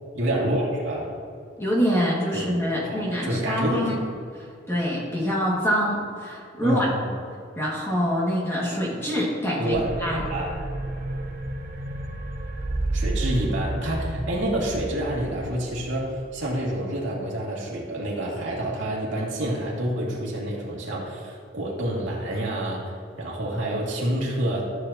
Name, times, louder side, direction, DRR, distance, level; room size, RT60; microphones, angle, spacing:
voice 1, 0.1-1.1 2.3-3.9 6.6-7.1 9.6-10.5 12.9-24.7, right 1 dB, 75° right, -4 dB, 2.3 m, -28 dB
voice 2, 1.6-4.0 4.3-6.9 7.6-10.2, equal, 15° left, -5 dB, 1.8 m, -25 dB
sound 1, 9.7-16.4, right 2 dB, 45° right, 0.9 m, -31 dB
14.0 x 7.3 x 2.8 m, 2.4 s
head